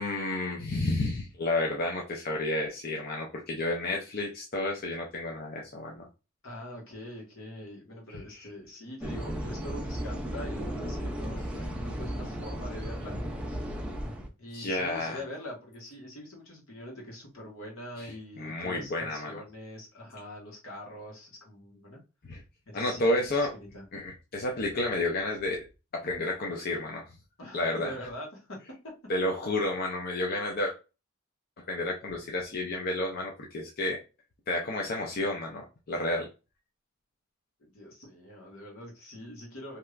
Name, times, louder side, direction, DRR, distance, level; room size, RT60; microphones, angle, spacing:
voice 1, 0.0-6.0 8.4-8.5 14.5-15.2 18.0-18.1 18.4-19.3 22.2-22.4 22.7-23.5 23.9-25.6 26.0-27.1 27.5-27.9 29.1-30.7 31.7-34.0 34.5-36.3, left 2 dB, 45° left, 0 dB, 0.5 m, -31 dB
voice 2, 6.4-13.2 14.4-22.0 22.7-23.8 27.4-28.6 37.6-39.8, left 1 dB, 75° left, -1 dB, 1.4 m, -43 dB
sound 1, 9.0-14.3, equal, 5° right, 0.4 m, -35 dB
3.2 x 2.8 x 2.4 m, 0.29 s
head